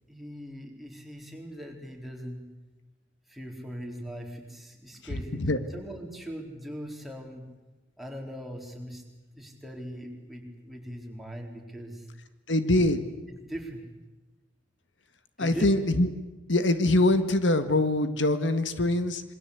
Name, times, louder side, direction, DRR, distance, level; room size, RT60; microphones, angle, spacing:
voice 1, 0.1-2.4 3.3-7.5 8.0-9.0 9.3-12.1 12.8-12.9 13.5-13.8 15.4-15.7, equal, ahead, 0 dB, 4.1 m, -40 dB
voice 2, 5.1-5.6 12.5-13.0 15.4-16.1 16.5-19.2, left 1 dB, 85° left, 10 dB, 1.8 m, -24 dB
27.0 x 23.5 x 8.3 m, 1.1 s
head